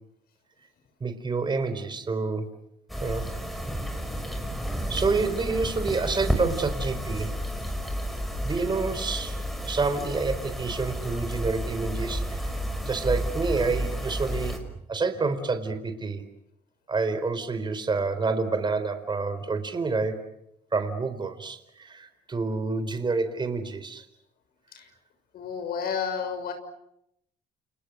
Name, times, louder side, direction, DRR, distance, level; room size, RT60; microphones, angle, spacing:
voice 1, 1.0-2.5 3.0-3.3 4.9-7.4 8.4-12.4 12.8-14.6 14.9-16.2 16.9-20.3 20.7-24.0, right 4 dB, 25° right, 10 dB, 4.2 m, -28 dB
sound 1, 2.9-14.6, equal, ahead, 5.8 m, -31 dB
voice 2, 25.3-26.5, left 6 dB, 65° left, 7 dB, 6.5 m, -31 dB
30.0 x 29.5 x 6.5 m, 0.76 s
cardioid pair, 110°, 17 cm